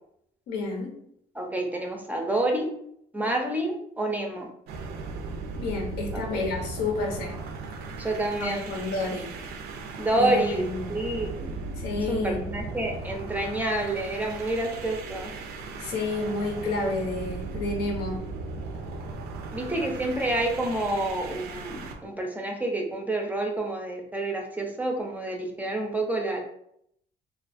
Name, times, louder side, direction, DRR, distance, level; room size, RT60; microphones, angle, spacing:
voice 1, 0.5-0.9 5.5-7.4 8.3-9.3 10.1-10.9 11.8-12.4 15.8-18.2, left 2 dB, 85° left, 1 dB, 0.7 m, -30 dB
voice 2, 1.4-2.7 3.1-4.5 6.1-6.4 8.0-8.7 10.0-11.5 12.1-15.3 19.5-26.4, right 1 dB, 10° right, 1 dB, 0.4 m, -28 dB
sound 1, 4.7-22.0, right 3 dB, 70° right, 0.4 m, -37 dB
2.4 x 2.3 x 2.5 m, 0.71 s
cardioid pair, 110°, 17 cm